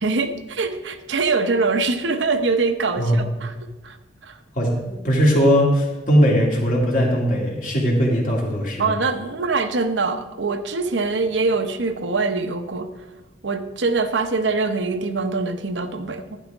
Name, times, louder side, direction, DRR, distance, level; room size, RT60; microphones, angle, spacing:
voice 1, 0.0-3.5 3.8-4.0 4.2-4.4 8.8-12.9 13.4-16.4, right 3 dB, 85° right, 8 dB, 0.8 m, -23 dB
voice 2, 3.0-3.3 4.6-8.9, equal, 45° left, -2 dB, 2.3 m, -19 dB
11.5 x 10.0 x 3.5 m, 1.1 s
head